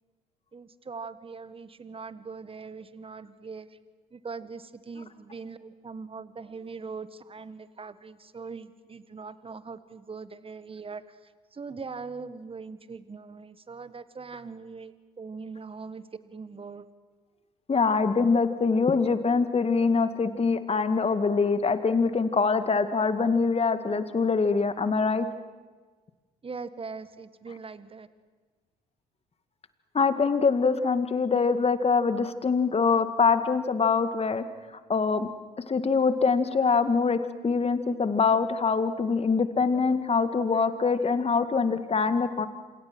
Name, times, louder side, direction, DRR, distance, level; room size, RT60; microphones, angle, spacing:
voice 1, 0.5-3.7 4.1-11.0 11.5-16.9 26.4-28.1, right 4 dB, 30° right, 14 dB, 1.7 m, -41 dB
voice 2, 17.7-25.3 29.9-35.3 35.7-42.5, left 5 dB, 30° left, 10 dB, 2.1 m, -24 dB
29.0 x 28.0 x 6.3 m, 1.4 s
figure-of-eight pair, 50°, 20 cm